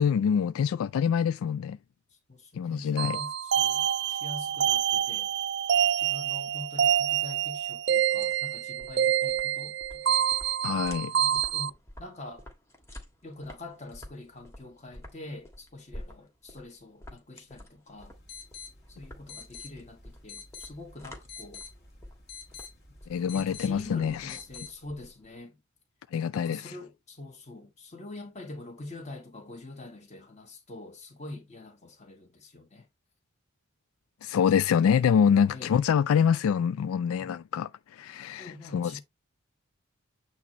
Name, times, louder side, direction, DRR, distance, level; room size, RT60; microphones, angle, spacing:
voice 1, 0.0-1.8 2.5-3.2 10.6-11.1 23.1-24.4 26.1-26.7 34.2-39.0, left 7 dB, 75° left, 0.3 m, -25 dB
voice 2, 2.3-5.3 6.0-10.3 11.1-12.5 13.2-18.2 18.9-21.6 23.3-25.6 26.3-32.9 35.5-35.8 37.2-37.3 38.4-39.0, left 2 dB, 30° left, 1.8 m, -45 dB
sound 1, 3.0-11.7, right 9 dB, 50° right, 0.4 m, -27 dB
sound 2, 7.9-25.4, left 1 dB, 15° left, 1.5 m, -50 dB
sound 3, 18.0-24.7, left 5 dB, 50° left, 2.3 m, -47 dB
8.5 x 3.0 x 4.3 m
head